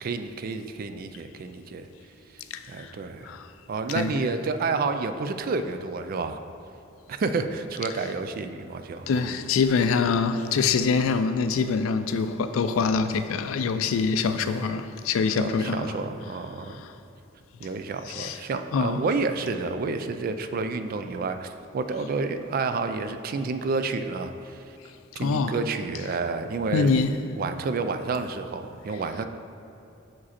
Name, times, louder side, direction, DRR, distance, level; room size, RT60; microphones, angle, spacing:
voice 1, 0.0-1.9 2.3-2.4 2.7-3.3 3.7-6.4 7.1-9.1 15.4-16.8 17.6-24.6 25.2-26.9 27.4-29.3, right 4 dB, 45° right, 0.3 m, -30 dB
voice 2, 2.5-2.9 3.2-3.5 3.9-4.2 9.1-16.0 16.8-16.9 18.1-18.4 18.7-19.0 25.2-25.6 26.7-27.1, left 5 dB, 90° left, 0.3 m, -25 dB
6.1 x 5.0 x 4.2 m
head